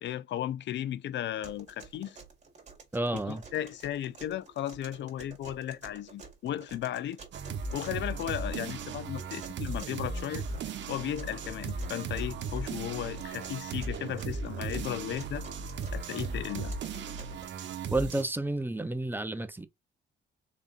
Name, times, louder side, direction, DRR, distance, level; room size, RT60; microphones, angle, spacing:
voice 1, 0.0-2.2 3.1-7.2 7.7-10.4 10.9-15.4 15.9-16.7, left 11 dB, 65° left, 0.5 m, -35 dB
sound 1, 1.4-17.4, right 4 dB, 35° right, 1.9 m, -50 dB
voice 2, 2.9-3.4 17.9-19.7, right 2 dB, 10° right, 0.6 m, -31 dB
sound 2, 7.3-18.2, right 4 dB, 65° right, 0.9 m, -37 dB
4.1 x 3.6 x 2.5 m
cardioid pair, 90°, 20 cm